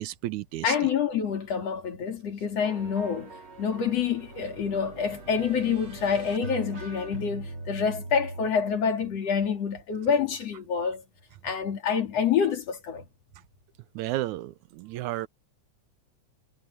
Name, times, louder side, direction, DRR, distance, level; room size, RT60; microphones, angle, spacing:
voice 1, 0.0-0.7 14.0-15.3, right 15 dB, 80° right, 2.0 m, -32 dB
voice 2, 0.6-3.3 3.6-11.0 11.4-13.1, left 7 dB, 55° left, 3.6 m, -27 dB
sound 1, 2.6-8.5, right 2 dB, 40° right, 4.1 m, -41 dB
omnidirectional pair, 3.4 m